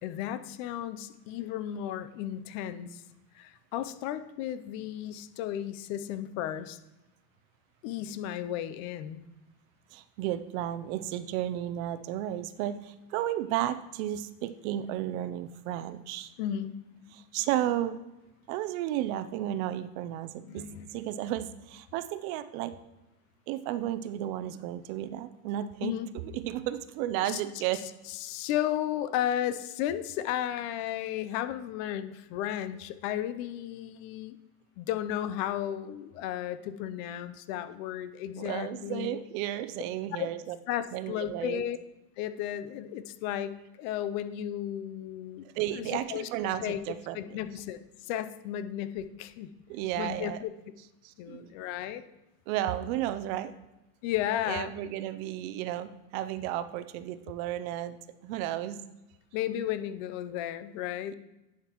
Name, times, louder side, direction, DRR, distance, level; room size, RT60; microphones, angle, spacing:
voice 1, 0.0-3.0 3.3-6.8 7.8-9.3 16.4-17.2 20.4-20.9 25.8-26.1 27.2-27.4 28.1-34.4 34.8-39.1 40.2-40.3 40.7-41.8 42.2-46.3 46.6-46.8 47.1-49.5 50.0-50.5 51.2-52.0 54.0-54.7 59.3-61.1, left 11 dB, 55° left, 12 dB, 0.7 m, -34 dB
voice 2, 9.9-16.3 17.1-18.0 18.5-20.6 20.9-22.7 23.5-27.8 38.4-40.6 40.9-41.6 45.6-47.5 49.7-50.4 51.3-51.4 52.5-53.5 54.5-58.0 58.2-58.8, right 12 dB, 60° right, 12 dB, 0.6 m, -33 dB
10.5 x 5.8 x 3.0 m, 0.98 s
supercardioid pair, 120°, 46 cm